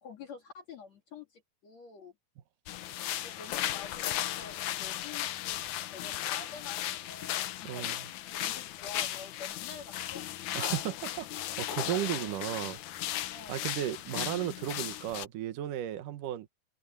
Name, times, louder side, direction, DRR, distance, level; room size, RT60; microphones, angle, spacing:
voice 1, 0.0-2.1 3.2-7.9 8.4-10.3 13.3-13.6, left 5 dB, 50° left, 3.1 m, -48 dB
sound 1, 2.7-15.2, left 13 dB, 70° left, 2.0 m, -36 dB
voice 2, 7.6-8.0 10.5-11.3 11.6-16.5, right 12 dB, 70° right, 2.7 m, -35 dB
omnidirectional pair, 4.1 m